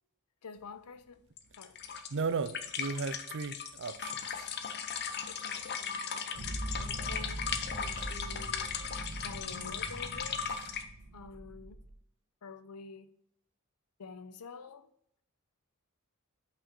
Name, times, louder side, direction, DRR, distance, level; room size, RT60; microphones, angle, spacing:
voice 1, 0.4-1.2 1.6-1.8 3.0-3.2 5.4-7.5 7.8-8.7 9.2-10.8 11.1-11.8 12.4-13.1 14.0-14.9, left 4 dB, 90° left, 0.6 m, -49 dB
sound 1, 1.4-10.8, left 7 dB, 50° left, 0.7 m, -37 dB
voice 2, 2.1-4.5, right 4 dB, 55° right, 0.5 m, -35 dB
sound 2, 6.4-11.9, right 1 dB, 90° right, 1.7 m, -42 dB
6.2 x 5.6 x 4.5 m
head